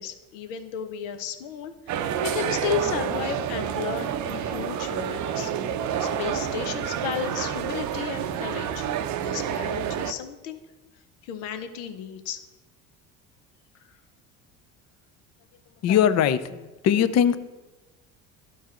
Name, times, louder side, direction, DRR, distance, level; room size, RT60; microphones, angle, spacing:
voice 1, 0.0-5.5 6.0-10.6 11.2-12.4, left 7 dB, 75° left, 9 dB, 0.8 m, -33 dB
sound 1, 1.9-10.1, right 9 dB, 45° right, 0.6 m, -29 dB
voice 2, 15.8-17.4, left 9 dB, 40° left, 13 dB, 0.6 m, -21 dB
13.0 x 4.6 x 3.0 m, 1.1 s
hypercardioid pair, 70°, 40 cm